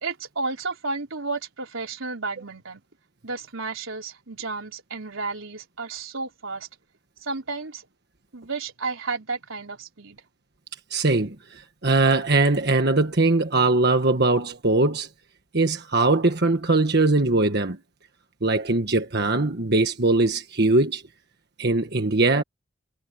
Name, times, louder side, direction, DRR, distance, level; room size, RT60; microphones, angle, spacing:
voice 1, 0.0-2.8 3.2-6.7 7.2-7.9 8.3-10.2, right 3 dB, 85° right, 3.8 m, -32 dB
voice 2, 10.9-15.1 15.5-17.8 18.4-21.0 21.6-22.4, right 2 dB, 55° right, 1.5 m, -21 dB
head